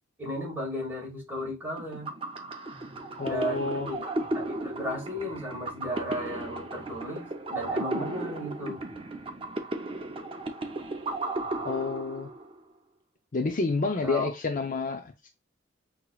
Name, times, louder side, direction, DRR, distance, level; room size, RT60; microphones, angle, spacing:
voice 1, 0.2-2.1 3.2-8.8 14.0-14.3, equal, 10° right, 2.1 m, -35 dB
sound 1, 1.8-12.6, right 2 dB, 25° right, 0.5 m, -35 dB
voice 2, 3.2-3.9 11.6-12.3 13.3-15.3, left 3 dB, 40° left, 0.5 m, -29 dB
5.8 x 2.9 x 2.3 m
head